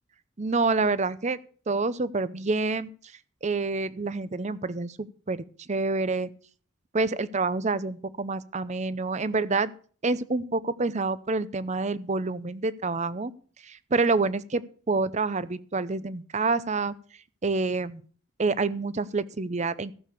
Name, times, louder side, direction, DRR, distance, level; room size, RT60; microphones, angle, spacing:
voice 1, 0.4-1.4 1.7-2.9 3.4-6.3 6.9-9.7 10.0-13.3 13.6-16.9 17.4-18.0 18.4-19.9, right 3 dB, 35° right, 17 dB, 0.6 m, -27 dB
14.5 x 6.8 x 6.8 m, 0.42 s
head